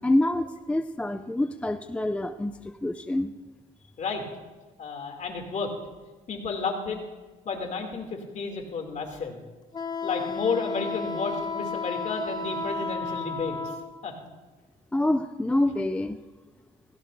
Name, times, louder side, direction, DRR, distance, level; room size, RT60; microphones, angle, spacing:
voice 1, 0.0-3.3 14.9-16.2, left 1 dB, 5° left, 9 dB, 0.4 m, -26 dB
voice 2, 4.8-5.7 6.3-7.0 7.4-9.4 10.0-13.6 14.0-14.2, left 4 dB, 45° left, 2 dB, 2.6 m, -31 dB
Wind instrument woodwind instrument, 9.7-13.9, left 4 dB, 25° left, 0.9 m, -32 dB
17.0 x 16.0 x 2.6 m, 1.3 s
cardioid pair, 110°, 17 cm